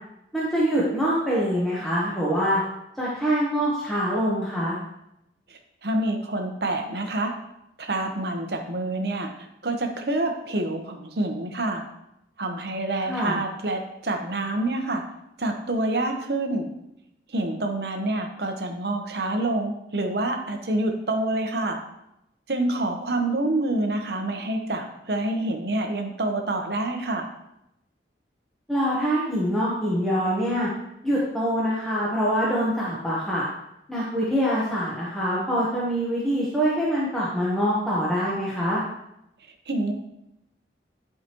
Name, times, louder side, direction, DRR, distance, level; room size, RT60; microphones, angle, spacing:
voice 1, 0.3-2.6 3.0-4.8 13.1-13.4 28.7-30.7 31.0-33.4 33.9-38.8, equal, ahead, -8 dB, 1.1 m, -24 dB
voice 2, 5.5-7.3 7.8-9.3 9.6-11.8 12.4-15.0 15.4-16.7 17.3-21.8 22.5-27.3 39.7-39.9, right 2 dB, 65° right, 4 dB, 1.0 m, -27 dB
10.0 x 5.0 x 3.0 m, 0.83 s
head